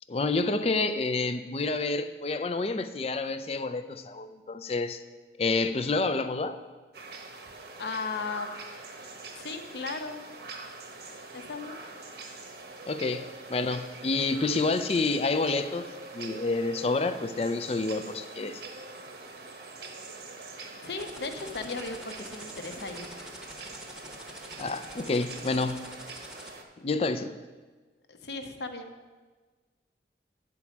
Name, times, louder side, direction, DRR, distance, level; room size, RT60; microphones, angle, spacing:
voice 1, 0.1-5.0 5.4-6.6 12.9-18.6 24.6-25.9 26.8-27.3, left 3 dB, 35° left, 10 dB, 0.4 m, -29 dB
sound 1, 6.9-26.6, right 3 dB, 65° right, 1.0 m, -44 dB
voice 2, 7.8-8.5 9.4-10.3 11.3-11.8 20.8-23.1 28.1-28.9, left 4 dB, 70° left, 6 dB, 0.8 m, -36 dB
sound 2, 21.0-26.5, equal, 5° right, 0.9 m, -46 dB
9.6 x 4.7 x 7.2 m, 1.4 s
head